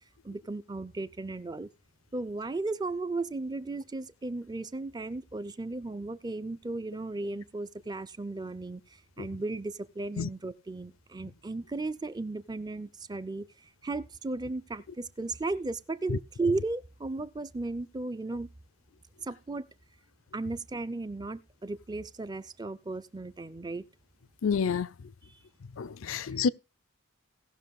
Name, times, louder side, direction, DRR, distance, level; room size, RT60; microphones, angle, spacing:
voice 1, 0.2-1.7 2.1-18.5 19.2-19.7 20.3-23.8 25.2-25.4 26.1-26.4, right 3 dB, 20° right, 0.5 m, -35 dB
voice 2, 24.4-24.9 25.8-26.5, left 6 dB, 65° left, 0.4 m, -28 dB
17.5 x 6.0 x 3.6 m
head